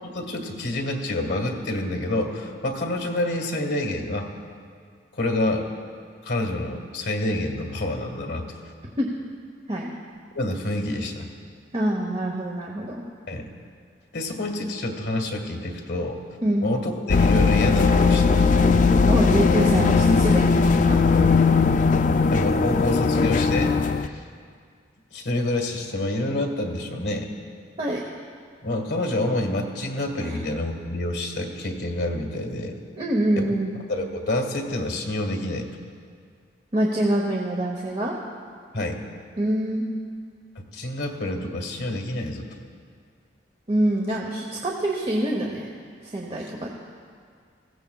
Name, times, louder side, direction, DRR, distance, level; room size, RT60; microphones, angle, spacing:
voice 1, 0.0-4.3 5.1-5.7 6.2-8.5 10.3-11.3 13.3-13.5 14.1-16.2 16.6-18.4 21.1-21.3 22.3-24.2 25.1-27.3 28.6-32.7 33.4-33.5 33.9-35.7 38.7-39.0 40.5-42.5, left 1 dB, 65° left, 2 dB, 1.6 m, -28 dB
voice 2, 11.7-13.0 16.4-16.7 19.1-20.6 20.9-21.1 27.8-28.0 30.2-30.4 33.0-33.7 36.7-38.2 39.4-39.9 43.7-45.7 46.0-46.7, right 1 dB, 30° right, -1 dB, 0.9 m, -25 dB
sound 1, 17.1-24.1, left 4 dB, 45° left, 0.3 m, -19 dB
20.0 x 15.5 x 2.3 m, 2.1 s
head